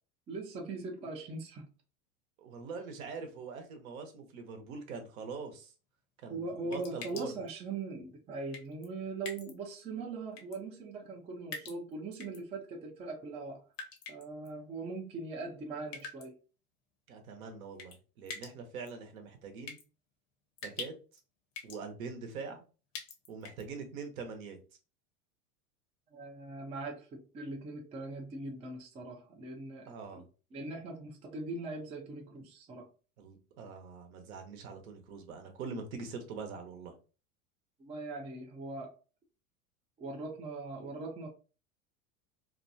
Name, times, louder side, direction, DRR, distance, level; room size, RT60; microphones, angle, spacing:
voice 1, 0.3-1.7 6.3-13.6 14.1-16.4 26.1-30.2 30.5-32.9 37.8-38.9 40.0-41.3, right 3 dB, 15° right, 0.4 m, -41 dB
voice 2, 2.4-5.7 6.2-7.4 17.1-19.8 20.6-20.9 21.6-22.6 23.3-24.6 29.9-30.2 33.2-36.9, right 5 dB, 70° right, 0.9 m, -43 dB
sound 1, 6.7-7.5 8.5-8.9 9.2-9.5 10.4-10.6 11.5-12.4 13.7-14.5 15.9-16.3 17.8-18.0 18.3-18.5 18.9-19.0 19.7-19.8 20.6-21.2 21.5-21.8 22.9-23.6, left 4 dB, 55° left, 0.9 m, -44 dB
2.6 x 2.2 x 2.6 m
hypercardioid pair, 95°, 43 cm